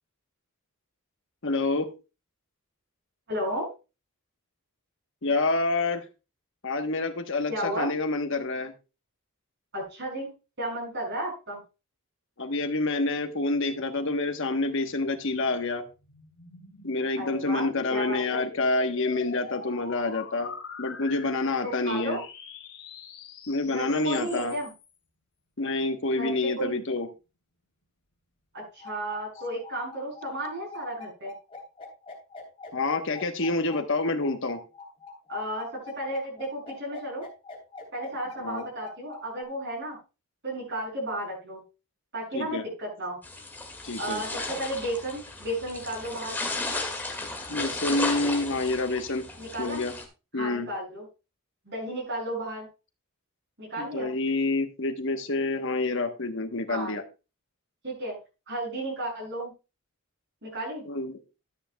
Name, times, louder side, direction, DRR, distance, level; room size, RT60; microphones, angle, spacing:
voice 1, 1.4-1.9 5.2-6.0 6.6-8.7 12.4-15.8 16.8-20.5 20.8-22.2 23.5-24.5 25.6-27.1 32.7-34.6 38.4-38.7 42.3-42.7 43.8-44.2 47.5-49.2 49.6-49.9 50.3-50.7 53.8-57.0 60.8-61.2, left 2 dB, 60° left, 7 dB, 1.1 m, -28 dB
voice 2, 3.3-3.7 7.5-7.9 9.7-11.6 17.2-17.6 17.9-18.4 21.6-22.2 23.6-24.7 26.1-26.8 28.5-31.3 35.3-35.7 35.9-37.3 37.9-40.0 40.4-41.6 42.1-43.2 44.0-46.4 49.4-49.8 50.4-51.0 51.7-52.7 53.6-54.1 56.7-56.9 57.8-58.2 58.5-59.5 60.4-60.8, right 1 dB, 55° right, -3 dB, 6.5 m, -33 dB
sound 1, 15.2-24.9, left 5 dB, 80° left, 2.3 m, -44 dB
sound 2, 28.8-39.4, left 3 dB, 25° left, 3.3 m, -44 dB
sound 3, 43.2-50.0, left 2 dB, 10° left, 1.9 m, -34 dB
13.0 x 9.0 x 2.2 m, 0.30 s
head